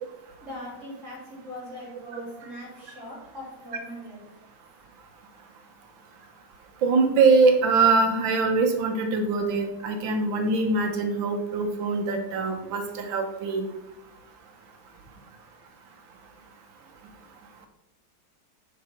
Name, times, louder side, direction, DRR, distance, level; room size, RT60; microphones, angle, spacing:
voice 1, 0.4-4.2, left 1 dB, 55° right, -4 dB, 3.9 m, -40 dB
voice 2, 6.8-13.7, right 4 dB, 85° right, 4 dB, 1.8 m, -23 dB
8.2 x 5.9 x 4.5 m, 0.97 s
omnidirectional pair, 2.1 m